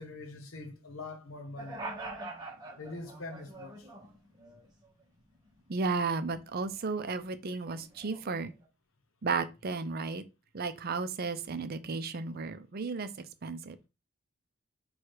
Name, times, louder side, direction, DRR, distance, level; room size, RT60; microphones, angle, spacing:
voice 1, 0.0-1.9 2.8-3.9, left 3 dB, 70° left, 0.9 m, -43 dB
sound 1, 1.6-4.9 5.3-6.8 7.1-8.6, right 2 dB, 20° right, 1.0 m, -45 dB
voice 2, 5.7-8.5 9.2-10.2 10.5-13.1 13.4-13.8, right 4 dB, 45° right, 0.5 m, -33 dB
4.8 x 2.3 x 4.5 m
head